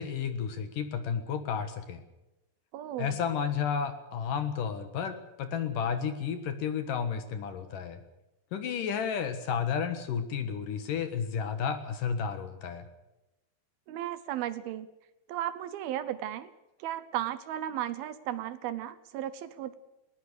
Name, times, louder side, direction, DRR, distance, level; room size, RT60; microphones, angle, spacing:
voice 1, 0.0-2.0 3.0-8.0 8.5-12.9, left 7 dB, 60° left, 9 dB, 2.7 m, -32 dB
voice 2, 2.7-3.2 13.9-14.9 15.3-16.5 16.8-19.7, right 12 dB, 75° right, 14 dB, 2.5 m, -35 dB
21.0 x 18.5 x 6.8 m, 0.97 s
omnidirectional pair, 4.9 m